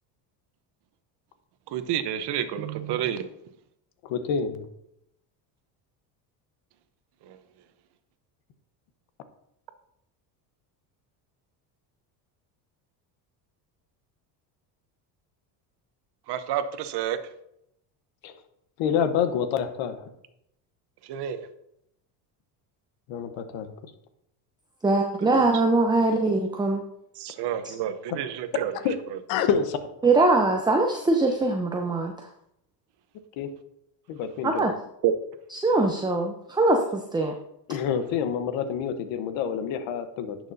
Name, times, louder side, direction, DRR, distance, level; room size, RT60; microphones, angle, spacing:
voice 1, 1.7-3.3 7.2-7.4 16.3-17.2 21.0-21.5 25.2-25.4 27.1-28.7 29.1-29.2 35.0-35.1, right 10 dB, 55° right, 11 dB, 0.9 m, -29 dB
voice 2, 4.1-4.7 18.2-18.3 18.8-20.0 23.1-23.7 28.8-28.9 29.3-29.8 33.4-33.5 34.1-34.7 37.7-40.4, left 7 dB, 65° left, 10 dB, 1.1 m, -27 dB
voice 3, 24.8-26.8 30.0-32.1 34.4-34.7 35.6-37.3, right 2 dB, 10° right, 3 dB, 0.6 m, -22 dB
10.5 x 6.2 x 2.7 m, 0.78 s
supercardioid pair, 95°, 49 cm